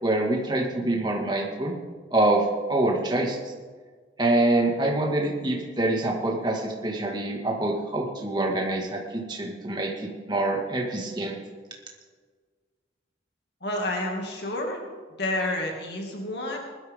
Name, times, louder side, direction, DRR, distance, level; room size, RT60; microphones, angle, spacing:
voice 1, 0.0-1.7 2.1-3.4 4.2-9.9 10.3-11.4, right 2 dB, 25° right, -1 dB, 2.0 m, -25 dB
voice 2, 13.6-14.9 15.2-16.6, left 1 dB, 65° left, 0 dB, 2.3 m, -29 dB
19.5 x 12.5 x 3.7 m, 1.5 s
head